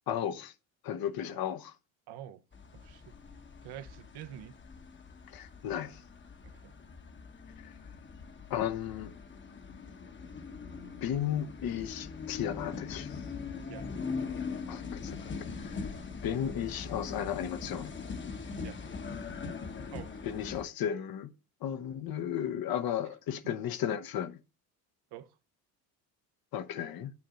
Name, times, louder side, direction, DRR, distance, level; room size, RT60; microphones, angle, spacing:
voice 1, 0.1-0.5 0.8-1.7 5.3-6.0 7.6-7.8 8.5-9.1 11.0-13.2 14.7-15.9 16.2-17.9 20.2-21.3 21.6-24.4 26.5-27.1, left 9 dB, 55° left, 0.9 m, -34 dB
voice 2, 2.1-2.4 2.7-3.1 3.6-4.5 6.4-6.7 13.7-13.9 18.5-18.8 19.9-20.2 23.4-23.5 25.1-25.3, right 11 dB, 65° right, 1.0 m, -47 dB
sound 1, 2.5-20.6, left 5 dB, 25° left, 1.0 m, -41 dB
8.7 x 6.0 x 3.8 m
supercardioid pair, 90°, 43 cm